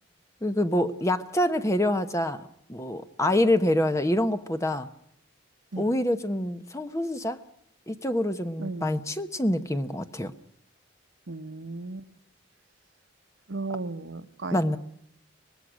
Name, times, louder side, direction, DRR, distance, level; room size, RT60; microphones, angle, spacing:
voice 1, 0.4-4.9 5.8-7.4 7.9-10.3 14.5-14.8, left 1 dB, 15° left, 9 dB, 0.9 m, -26 dB
voice 2, 8.6-9.0 11.3-12.1 13.5-14.8, right 3 dB, 75° right, 10 dB, 1.1 m, -35 dB
24.5 x 20.0 x 6.3 m, 0.73 s
head